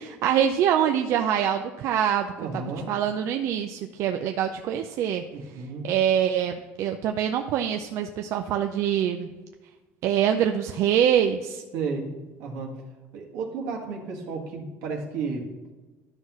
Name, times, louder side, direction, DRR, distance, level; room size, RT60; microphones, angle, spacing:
voice 1, 0.0-2.3 2.9-5.2 5.8-9.3 10.0-11.6, right 9 dB, 55° right, 5 dB, 0.4 m, -24 dB
voice 2, 2.4-2.9 5.3-5.9 11.7-12.1 12.4-12.8 13.1-15.5, right 4 dB, 80° right, 0 dB, 1.7 m, -32 dB
11.5 x 5.6 x 3.0 m, 1.2 s
cardioid pair, 145°, 6 cm